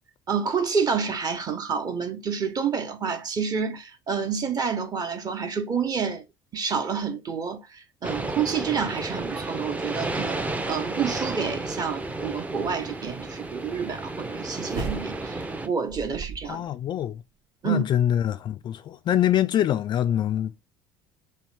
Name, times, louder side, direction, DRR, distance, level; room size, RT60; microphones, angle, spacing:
voice 1, 0.3-6.2 6.5-15.4 15.6-16.7 17.6-17.8, right 6 dB, 35° right, 1.0 m, -29 dB
sound 1, 8.0-15.7, right 2 dB, 10° right, 0.6 m, -32 dB
sound 2, 14.7-15.4 15.9-16.7 17.0-17.1, right 4 dB, 65° right, 1.2 m, -34 dB
voice 2, 16.4-17.2 17.6-20.6, left 11 dB, 40° left, 0.4 m, -24 dB
3.3 x 3.0 x 4.6 m
figure-of-eight pair, 65°, 12 cm